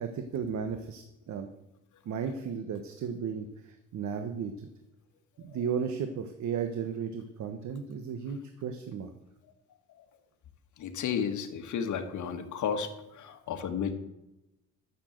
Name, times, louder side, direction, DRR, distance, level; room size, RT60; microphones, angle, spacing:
voice 1, 0.0-1.5 2.0-4.7 5.4-9.1, right 6 dB, 70° right, 7 dB, 1.2 m, -35 dB
voice 2, 10.8-13.9, left 7 dB, 75° left, 6 dB, 1.7 m, -33 dB
11.0 x 7.3 x 7.9 m, 0.92 s
cardioid pair, 90°, 30 cm